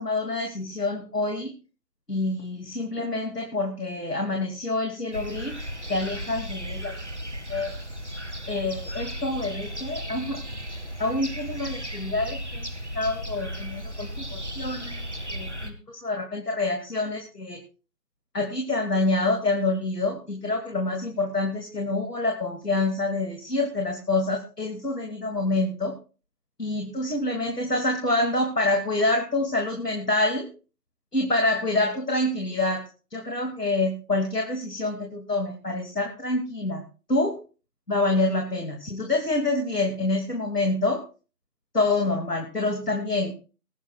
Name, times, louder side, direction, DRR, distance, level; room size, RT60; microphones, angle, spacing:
voice 1, 0.0-1.5 2.1-5.6 5.9-6.9 7.5-7.7 8.5-10.4 11.0-12.7 12.9-15.0 15.3-17.6 18.3-25.9 26.6-30.5 31.1-36.8 37.1-37.4 37.9-41.0 41.7-43.3, left 2 dB, 75° left, 3 dB, 2.9 m, -27 dB
sound 1, 5.1-15.7, equal, 45° right, 1.8 m, -35 dB
22.0 x 11.0 x 2.4 m, 0.34 s
figure-of-eight pair, 175°, 48 cm